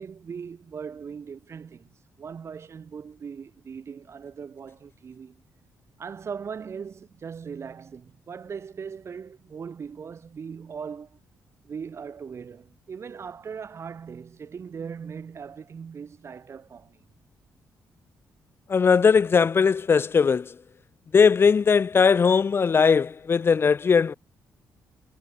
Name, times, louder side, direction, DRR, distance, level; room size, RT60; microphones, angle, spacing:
voice 1, 0.0-1.9 2.2-5.4 6.0-11.2 11.6-17.0, right 6 dB, 40° right, 4.1 m, -39 dB
voice 2, 18.7-20.4 21.1-24.1, left 5 dB, 35° left, 0.9 m, -19 dB
cardioid pair, 130°, 7 cm